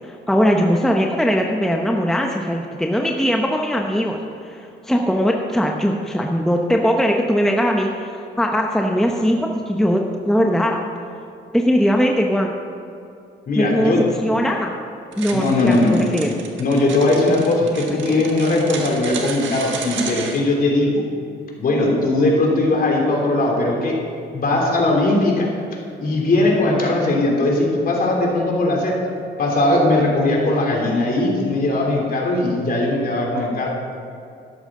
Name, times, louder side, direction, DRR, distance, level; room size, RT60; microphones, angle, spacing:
voice 1, 0.1-4.2 4.4-8.1 8.4-10.8 11.5-12.5 13.6-13.9 14.2-14.7 15.2-16.3 18.1-18.2, equal, ahead, 1 dB, 0.8 m, -20 dB
voice 2, 13.5-14.0 15.3-16.0 16.6-21.0 21.6-24.0 24.3-25.5 26.0-28.9 29.4-33.7, left 2 dB, 45° left, -2 dB, 3.0 m, -19 dB
sound 1, 15.1-20.4, right 5 dB, 70° right, 1.5 m, -31 dB
13.0 x 11.0 x 3.8 m, 2.6 s
cardioid pair, 90°, 20 cm